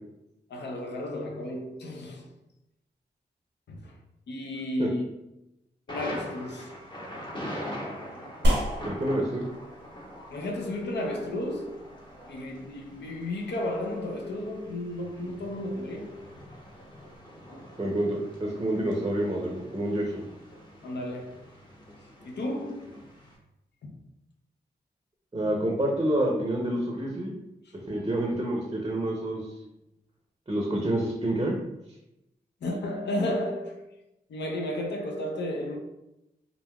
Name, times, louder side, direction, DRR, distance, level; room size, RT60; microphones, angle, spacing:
voice 1, 0.5-2.3 3.7-4.0 4.3-5.0 5.9-6.7 10.3-11.8 12.3-16.2 20.8-21.4 22.2-22.9 23.8-23.9 32.6-33.8 34.3-35.8, left 1 dB, 75° left, 0.6 m, -33 dB
Thunder, 5.9-23.4, equal, 25° left, 0.8 m, -44 dB
sound 1, 8.4-17.2, equal, 85° right, 0.7 m, -34 dB
voice 2, 8.8-9.4 17.8-20.2 25.3-27.3 27.9-29.5 30.5-31.6, right 1 dB, 25° right, 0.6 m, -28 dB
3.3 x 2.4 x 2.2 m
cardioid pair, 55°, 18 cm